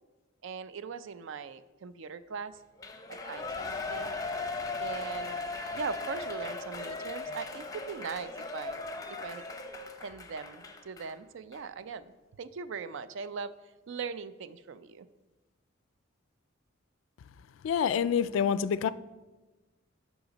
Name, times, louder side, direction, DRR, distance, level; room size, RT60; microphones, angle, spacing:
voice 1, 0.4-2.6 3.1-4.2 4.8-5.4 5.7-8.8 9.2-9.5 10.0-13.5 13.9-15.1, right 5 dB, 65° right, 0.4 m, -40 dB
Shout / Cheering, 2.8-11.1 11.5-11.6, left 3 dB, 15° left, 0.6 m, -38 dB
voice 2, 17.6-18.9, left 7 dB, 70° left, 0.3 m, -27 dB
12.0 x 5.0 x 4.0 m
head